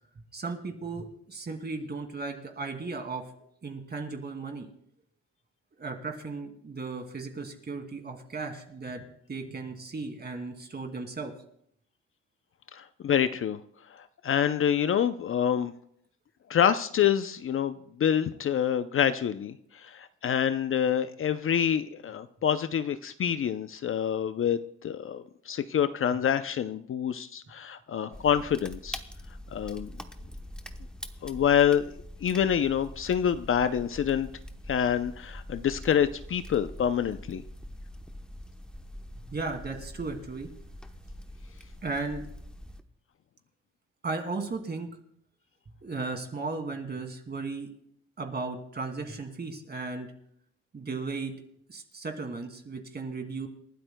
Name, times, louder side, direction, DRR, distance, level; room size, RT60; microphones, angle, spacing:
voice 1, 0.3-3.3 3.6-4.7 5.8-11.3 39.3-40.5 41.8-42.2 44.0-44.9 45.8-47.7 48.2-50.1 50.7-51.4 51.7-53.5, right 3 dB, 35° right, 4 dB, 2.4 m, -36 dB
voice 2, 12.7-13.6 13.9-15.7 16.5-29.0 29.5-29.9 31.2-31.8 32.2-34.3 34.7-37.4, left 9 dB, 45° left, 11 dB, 0.5 m, -27 dB
sound 1, 28.1-42.8, left 1 dB, 5° left, 0.9 m, -44 dB
28.5 x 12.5 x 2.2 m, 0.69 s
cardioid pair, 90°, 30 cm